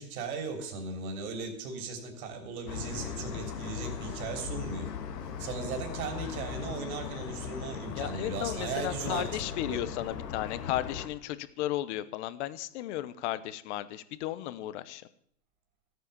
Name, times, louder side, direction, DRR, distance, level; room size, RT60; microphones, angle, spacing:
voice 1, 0.0-4.9 5.4-9.3 9.6-9.8, right 4 dB, 60° right, 4 dB, 3.4 m, -37 dB
sound 1, 2.7-11.1, left 7 dB, 75° left, 2.2 m, -38 dB
voice 2, 8.0-15.0, left 14 dB, 45° left, 15 dB, 1.0 m, -34 dB
13.5 x 9.3 x 7.0 m, 0.64 s
hypercardioid pair, 140°, 48 cm